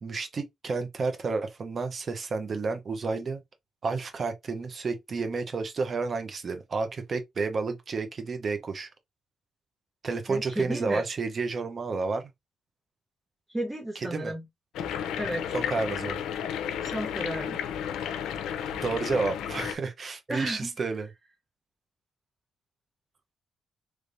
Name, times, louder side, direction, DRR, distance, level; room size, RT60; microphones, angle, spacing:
voice 1, 0.0-3.4 3.8-8.9 10.0-12.3 14.0-14.3 15.5-16.2 18.8-21.1, right 4 dB, 40° right, 0.8 m, -31 dB
voice 2, 10.3-11.0 13.5-14.5 15.2-15.5 16.8-17.6 20.3-20.7, right 1 dB, 15° right, 1.2 m, -33 dB
sound 1, 14.7-19.8, left 9 dB, 80° left, 0.5 m, -32 dB
3.3 x 3.2 x 2.6 m
cardioid pair, 90°, 0 cm